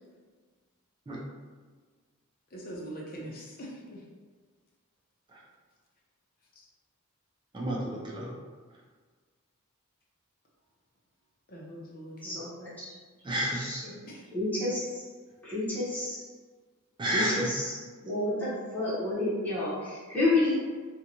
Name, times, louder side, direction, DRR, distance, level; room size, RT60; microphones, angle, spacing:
voice 1, 2.5-4.0 11.5-12.4 14.0-14.2, right 1 dB, 45° left, -3 dB, 0.6 m, -42 dB
voice 2, 7.5-8.3 13.2-13.7 17.0-17.5, right 1 dB, 20° right, -3 dB, 0.4 m, -30 dB
voice 3, 12.2-12.7 13.6-13.8 14.3-14.8 15.4-16.2 17.1-17.6 18.0-20.5, left 2 dB, 10° left, -10 dB, 0.9 m, -29 dB
2.8 x 2.2 x 2.6 m, 1.5 s
head